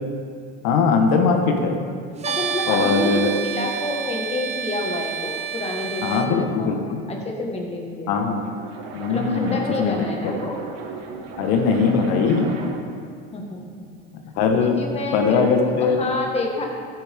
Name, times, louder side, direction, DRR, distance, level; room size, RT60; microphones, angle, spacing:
voice 1, 0.6-1.8 2.7-3.3 6.0-7.0 8.1-8.5 8.9-10.0 11.4-12.5 14.4-14.8 15.1-16.0, left 5 dB, 70° left, 3 dB, 1.6 m, -20 dB
voice 2, 2.2-8.1 9.1-10.6 13.3-13.9 14.6-16.6, left 2 dB, 20° left, 0 dB, 1.9 m, -29 dB
sound 1, 2.2-6.3, right 7 dB, 20° right, 0.7 m, -29 dB
sound 2, 8.2-13.0, right 4 dB, 85° right, 1.5 m, -35 dB
14.0 x 9.5 x 3.8 m, 2.2 s
supercardioid pair, 130°, 30 cm